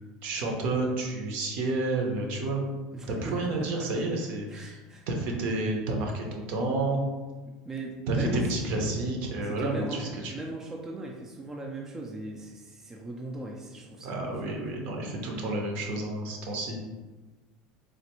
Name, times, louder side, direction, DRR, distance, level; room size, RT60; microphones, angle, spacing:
voice 1, 0.2-2.6 3.1-4.8 5.1-7.0 8.1-10.3 14.0-16.8, right 2 dB, 60° right, 1 dB, 0.7 m, -30 dB
voice 2, 2.9-3.9 4.5-5.0 7.7-8.4 9.5-14.8, right 2 dB, 15° right, -1 dB, 0.4 m, -39 dB
3.2 x 2.5 x 3.0 m, 1.2 s
supercardioid pair, 140°, 3 cm